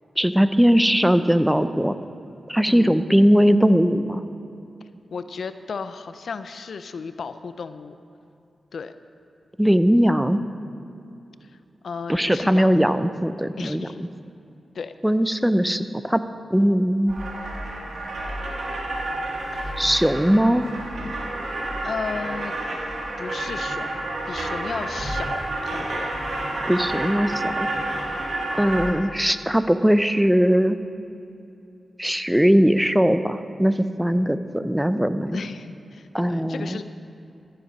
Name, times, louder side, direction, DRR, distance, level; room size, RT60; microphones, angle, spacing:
voice 1, 0.2-2.0 2.5-4.2 9.6-10.4 12.1-13.9 15.0-16.2 16.5-17.2 19.8-20.8 26.7-27.7 28.5-30.8 32.0-35.5 36.1-36.8, equal, 5° right, 11 dB, 0.6 m, -20 dB
voice 2, 2.7-3.0 5.1-8.0 8.7-8.9 11.4-11.5 11.8-12.8 13.6-14.1 14.7-14.9 19.5-19.8 21.8-22.5 23.2-26.1 28.9-29.2 35.3-36.8, left 5 dB, 75° left, 11 dB, 0.4 m, -34 dB
sound 1, 17.1-28.9, right 1 dB, 75° right, 2.1 m, -29 dB
14.5 x 7.6 x 5.4 m, 2.7 s
cardioid pair, 50°, 0 cm